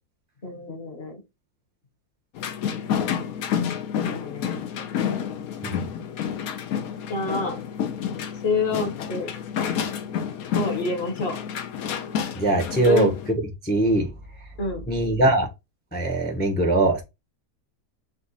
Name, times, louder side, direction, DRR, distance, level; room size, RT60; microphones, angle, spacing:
voice 1, 0.4-1.2 4.0-4.6 7.1-7.6 8.4-9.3 10.5-11.4 12.8-13.1 14.6-14.8, left 3 dB, 45° left, 5 dB, 1.3 m, -27 dB
sound 1, 2.4-13.3, left 8 dB, 70° left, 1.1 m, -29 dB
voice 2, 12.4-13.1 13.6-14.1 14.9-15.5 15.9-17.0, right 2 dB, 10° left, 3 dB, 0.6 m, -21 dB
5.2 x 2.4 x 4.0 m, 0.24 s
omnidirectional pair, 1.7 m